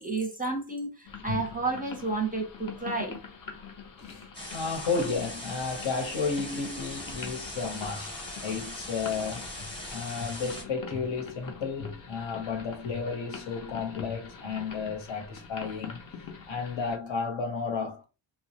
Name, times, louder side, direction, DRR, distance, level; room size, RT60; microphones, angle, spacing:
voice 1, 0.0-3.2, right 3 dB, 20° right, 0.5 m, -31 dB
sound 1, 1.1-17.0, left 6 dB, 45° left, 0.6 m, -43 dB
voice 2, 4.0-8.2 8.4-9.5 9.9-16.0 16.5-18.0, left 5 dB, 70° left, 0.9 m, -33 dB
sound 2, 4.3-10.6, left 1 dB, 10° left, 0.8 m, -40 dB
2.2 x 2.1 x 2.7 m
wide cardioid pair, 105°, 47 cm